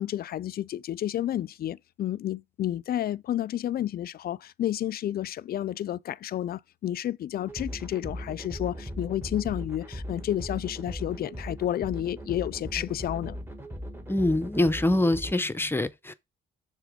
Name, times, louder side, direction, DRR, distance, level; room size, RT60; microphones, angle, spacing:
voice 1, 0.0-13.4, left 12 dB, 50° left, 0.4 m, -31 dB
sound 1, 7.5-15.3, equal, 10° right, 1.3 m, -38 dB
voice 2, 14.1-16.1, left 1 dB, 10° left, 0.6 m, -24 dB
7.0 x 3.5 x 5.0 m
cardioid pair, 90°, 20 cm